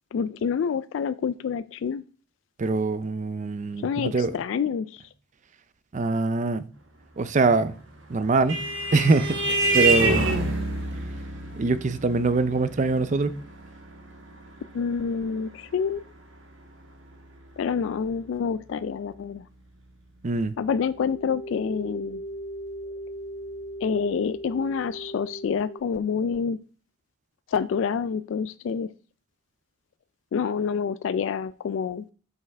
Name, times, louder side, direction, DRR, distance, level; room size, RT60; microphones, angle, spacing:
voice 1, 0.1-2.0 3.8-5.0 14.7-16.1 17.6-19.4 20.6-22.2 23.8-26.6 27.5-28.9 30.3-32.1, left 6 dB, 70° left, 0.3 m, -27 dB
voice 2, 2.6-4.3 5.9-6.7 7.2-7.7 8.1-8.6 8.9-10.3 11.6-13.4 20.2-20.5, right 3 dB, 40° right, 0.5 m, -23 dB
Vehicle horn car horn honking, 7.9-16.8, right 2 dB, 70° right, 1.2 m, -28 dB
sound 1, 20.8-25.8, right 1 dB, 35° left, 1.5 m, -38 dB
5.6 x 5.4 x 4.6 m
head